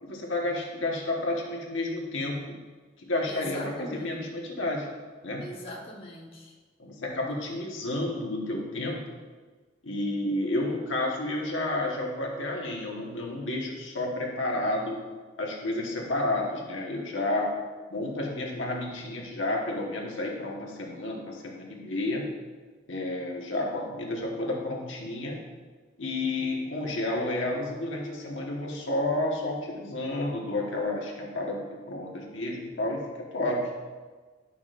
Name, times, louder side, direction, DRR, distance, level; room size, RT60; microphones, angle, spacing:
voice 1, 0.0-2.6 3.0-4.9 5.2-5.4 6.8-9.0 9.8-15.0 15.4-17.6 17.9-22.3 22.9-25.4 26.0-33.7, left 2 dB, 75° left, -1 dB, 1.3 m, -31 dB
voice 2, 3.3-4.2 5.4-6.5, left 1 dB, 30° left, -4 dB, 1.2 m, -41 dB
11.0 x 5.9 x 2.5 m, 1.4 s
head